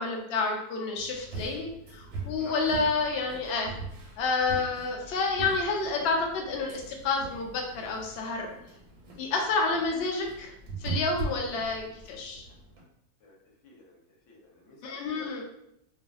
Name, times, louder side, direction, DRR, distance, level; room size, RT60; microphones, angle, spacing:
voice 1, 0.0-3.7 4.2-8.5 9.2-10.5 10.8-12.4 14.8-15.4, left 3 dB, 85° left, 1 dB, 0.5 m, -29 dB
sound 1, 1.0-12.8, right 3 dB, 80° right, 1.2 m, -41 dB
voice 2, 13.6-14.0 14.3-15.4, left 2 dB, 65° left, -2 dB, 1.0 m, -50 dB
2.5 x 2.4 x 2.3 m, 0.76 s
omnidirectional pair, 1.6 m